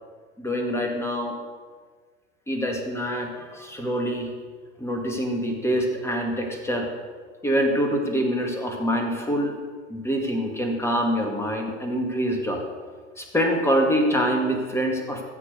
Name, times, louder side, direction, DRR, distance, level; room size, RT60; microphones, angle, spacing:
voice 1, 0.4-1.4 2.5-4.3 4.8-6.9 7.4-9.6 9.9-12.6 13.2-15.2, equal, 5° left, 2 dB, 2.2 m, -25 dB
14.0 x 7.5 x 6.7 m, 1.5 s
figure-of-eight pair, 85°, 38 cm